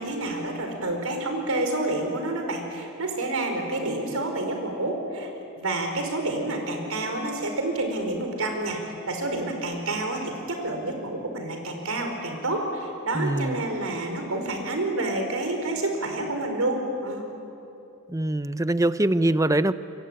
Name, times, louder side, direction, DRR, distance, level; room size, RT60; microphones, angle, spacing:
voice 1, 0.0-5.3 5.6-17.3, right 2 dB, 75° right, 4 dB, 4.9 m, -29 dB
voice 2, 13.2-13.6 18.1-19.7, right 1 dB, 15° right, 13 dB, 0.7 m, -23 dB
27.5 x 24.0 x 9.0 m, 2.8 s
head